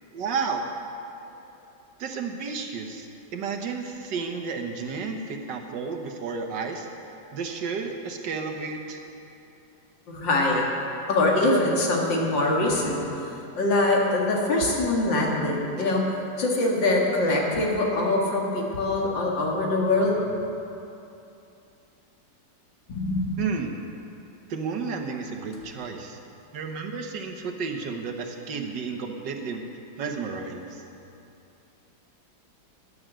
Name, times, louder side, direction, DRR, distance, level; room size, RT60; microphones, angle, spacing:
voice 1, 0.1-0.7 2.0-6.9 7.3-9.0 23.4-23.7 24.5-26.2 26.5-29.6 30.0-30.8, right 5 dB, 70° right, 4 dB, 1.7 m, -32 dB
voice 2, 10.1-10.7 11.1-13.0 13.6-20.2 22.9-23.4, left 2 dB, 80° left, -2 dB, 2.7 m, -23 dB
11.5 x 10.5 x 7.5 m, 2.8 s
omnidirectional pair, 2.0 m